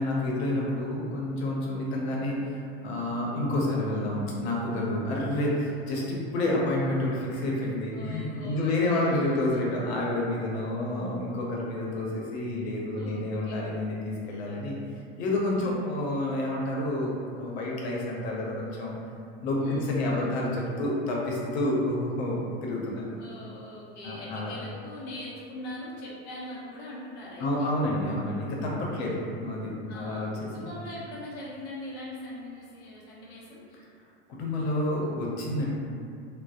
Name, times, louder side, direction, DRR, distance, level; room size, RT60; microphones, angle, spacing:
voice 1, 0.0-14.7 15.2-18.9 19.4-23.1 24.0-24.5 27.4-30.7 34.3-35.7, left 1 dB, 75° left, -3 dB, 0.7 m, -29 dB
voice 2, 7.9-9.6 12.9-13.5 15.5-15.8 19.6-20.4 23.2-27.7 28.9-29.1 29.9-33.6, left 1 dB, 30° left, -6 dB, 0.5 m, -41 dB
2.6 x 2.0 x 2.3 m, 2.3 s
supercardioid pair, 135°, 32 cm